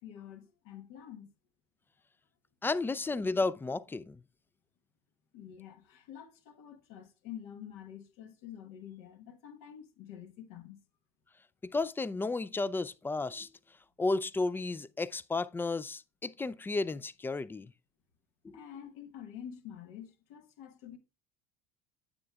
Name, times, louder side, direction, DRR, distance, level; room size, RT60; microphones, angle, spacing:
voice 1, 0.0-1.3 5.3-10.8 18.5-21.0, left 9 dB, 70° left, 1.3 m, -48 dB
voice 2, 2.6-4.2 11.6-13.5 14.0-17.7 18.4-18.6, left 3 dB, 10° left, 0.3 m, -33 dB
9.6 x 7.6 x 2.3 m
hypercardioid pair, 75°, 19 cm